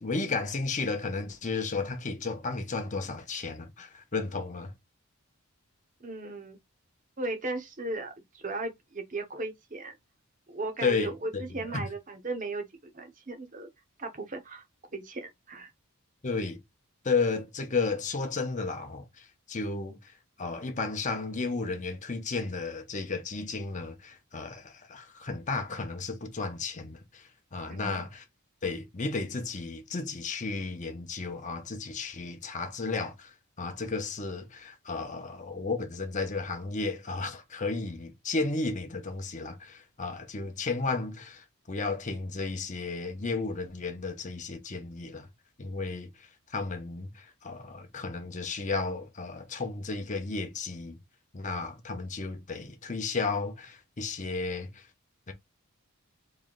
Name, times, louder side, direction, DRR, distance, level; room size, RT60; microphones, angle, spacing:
voice 1, 0.0-4.7 10.8-11.9 16.2-16.6 17.0-28.2 28.6-45.3 45.6-51.0 51.3-54.9 55.3-55.4, left 4 dB, 35° left, 0.8 m, -33 dB
voice 2, 6.0-6.6 7.2-9.9 10.5-13.7 14.0-14.6 14.9-15.7 27.7-28.0, right 2 dB, 35° right, 0.8 m, -36 dB
3.2 x 2.8 x 3.8 m
head